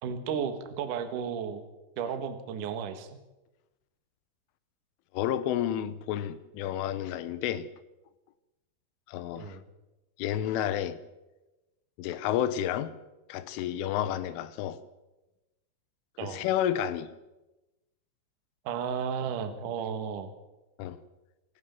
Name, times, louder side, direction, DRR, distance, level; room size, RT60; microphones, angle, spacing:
voice 1, 0.0-1.6 2.0-3.2 9.4-9.6 16.2-16.5 18.6-20.3, right 7 dB, 55° right, 2.5 m, -33 dB
voice 2, 5.1-7.7 9.1-9.6 10.2-11.0 12.0-12.9 13.3-14.8 16.2-17.1 20.8-21.0, left 11 dB, 80° left, 3.4 m, -30 dB
26.0 x 14.0 x 7.1 m
omnidirectional pair, 5.7 m